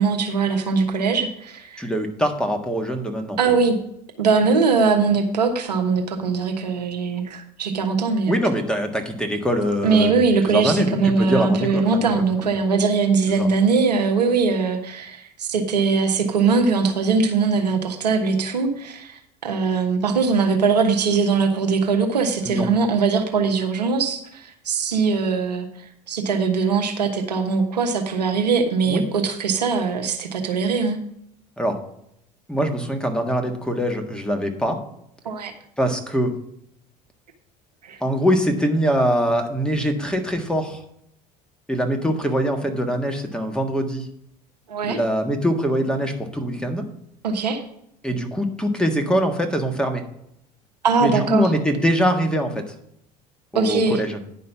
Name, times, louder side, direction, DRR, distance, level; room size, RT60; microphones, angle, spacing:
voice 1, 0.0-1.8 3.4-3.8 4.2-8.4 9.8-31.0 35.2-35.5 37.8-38.0 44.7-45.0 47.2-47.6 50.8-51.5 53.5-54.0, right 4 dB, 80° right, 4 dB, 1.2 m, -21 dB
voice 2, 1.8-3.4 8.3-10.1 10.4-12.1 12.4-12.5 13.4-13.5 22.4-22.7 28.9-29.1 31.6-31.8 32.5-34.8 35.8-36.3 38.0-40.8 41.7-44.1 44.9-46.9 48.0-50.0 51.0-52.6 53.5-54.2, equal, 5° left, 4 dB, 1.6 m, -23 dB
10.0 x 5.5 x 5.6 m, 0.75 s
figure-of-eight pair, 70°, 21 cm